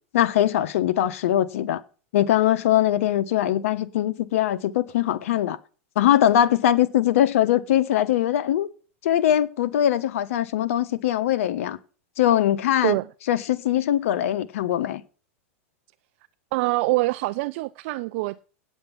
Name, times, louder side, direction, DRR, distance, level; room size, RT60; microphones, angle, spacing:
voice 1, 0.1-1.8 2.1-5.6 6.0-8.7 9.0-11.8 12.2-12.9 13.3-15.0, left 11 dB, 75° left, 1.2 m, -21 dB
voice 2, 16.5-18.4, right 21 dB, 55° right, 0.5 m, -24 dB
9.1 x 7.9 x 7.2 m
supercardioid pair, 130°, 8 cm